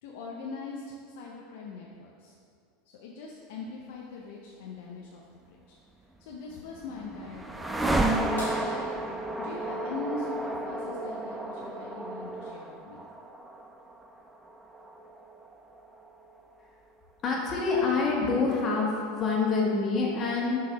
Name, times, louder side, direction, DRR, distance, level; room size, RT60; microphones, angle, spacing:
voice 1, 0.0-2.3 3.0-5.8 6.2-7.9 8.6-8.8 9.4-13.0, left 3 dB, 65° left, -2 dB, 0.6 m, -41 dB
sound 1, 6.3-16.4, right 1 dB, 10° right, 0.6 m, -33 dB
sound 2, 8.4-10.8 12.8-12.9 15.1-15.2 16.9-17.2 18.0-18.1, left 1 dB, 85° left, 1.7 m, -45 dB
voice 2, 17.2-20.6, left 4 dB, 35° left, -3 dB, 1.6 m, -26 dB
6.4 x 4.0 x 5.2 m, 2.3 s
hypercardioid pair, 85°, 0 cm